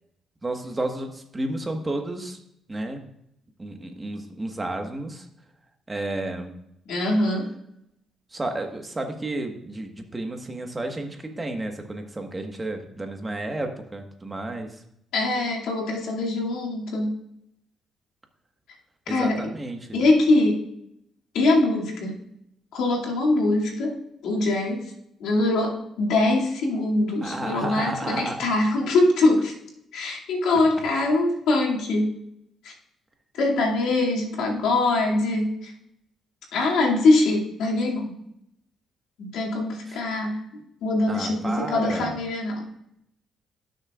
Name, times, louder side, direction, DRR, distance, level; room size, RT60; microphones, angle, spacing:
voice 1, 0.4-2.4 2.7-3.0 3.6-5.2 5.9-6.6 8.3-14.8 19.1-20.0 27.2-28.5 39.9-40.0 41.1-42.2, right 2 dB, 20° right, 4 dB, 1.4 m, -31 dB
voice 2, 6.9-7.5 15.1-17.1 19.1-19.4 19.9-20.6 21.3-22.2 22.7-24.0 24.2-24.8 25.2-29.5 29.9-32.1 32.6-32.7 33.3-35.7 36.5-38.1 39.2-40.4 40.8-42.6, left 2 dB, 85° left, -2 dB, 2.4 m, -23 dB
17.5 x 6.5 x 2.4 m, 0.78 s
cardioid pair, 90°, 0 cm